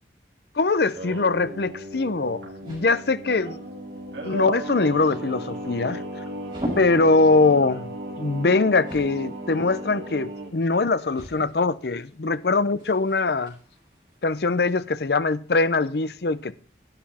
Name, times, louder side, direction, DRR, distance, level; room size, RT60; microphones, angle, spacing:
voice 1, 0.6-3.6 4.2-6.0 6.8-7.9 8.2-13.5 14.2-16.5, left 3 dB, 65° left, 0.6 m, -22 dB
Singing, 0.8-10.5, right 1 dB, 85° right, 2.8 m, -35 dB
sound 1, 1.3-14.7, equal, 25° right, 6.8 m, -43 dB
12.0 x 9.5 x 4.3 m
head